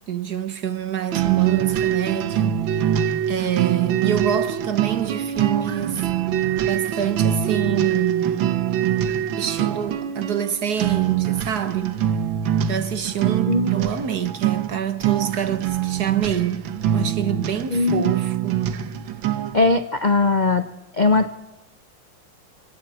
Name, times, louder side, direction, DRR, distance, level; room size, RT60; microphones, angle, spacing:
voice 1, 0.1-2.8 3.3-6.0 6.6-8.6 9.4-12.0 12.7-18.6, right 9 dB, 50° right, 1.6 m, -26 dB
sound 1, 1.1-19.7, right 10 dB, 70° right, 1.7 m, -24 dB
voice 2, 17.7-18.1 19.5-20.6 20.9-21.3, left 3 dB, 75° left, 0.4 m, -19 dB
29.5 x 25.0 x 4.4 m
omnidirectional pair, 2.3 m